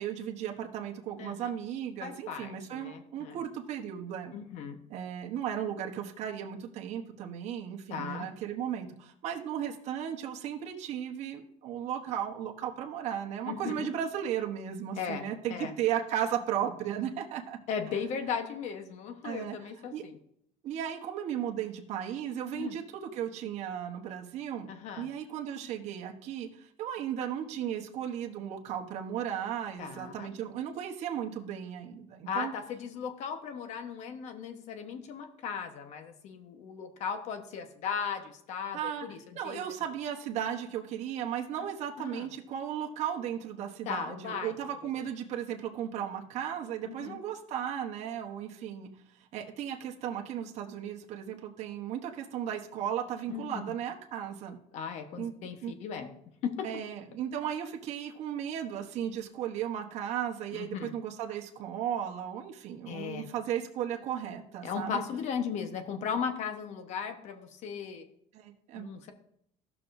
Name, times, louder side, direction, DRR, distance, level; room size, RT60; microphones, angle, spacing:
voice 1, 0.0-4.3 4.9-17.6 19.2-19.6 19.9-20.0 20.6-24.7 25.0-32.5 38.7-39.1 39.3-48.9 49.2-54.6 55.2-55.3 55.6-55.7 56.6-65.0 68.3-68.9, right 9 dB, 55° right, 2 dB, 1.1 m, -35 dB
voice 2, 1.2-1.5 2.0-3.4 4.3-4.8 7.9-8.3 13.5-13.9 15.0-15.7 17.7-20.2 22.5-22.8 24.7-25.1 29.8-30.3 32.3-39.2 39.4-39.6 42.0-42.3 43.8-44.5 46.8-47.2 53.3-53.4 54.7-56.1 56.4-56.5 60.5-60.9 62.9-63.3 64.6-68.0 68.7-69.1, left 7 dB, 60° left, 7 dB, 1.2 m, -37 dB
15.5 x 6.0 x 2.6 m, 0.72 s
cardioid pair, 135°, 14 cm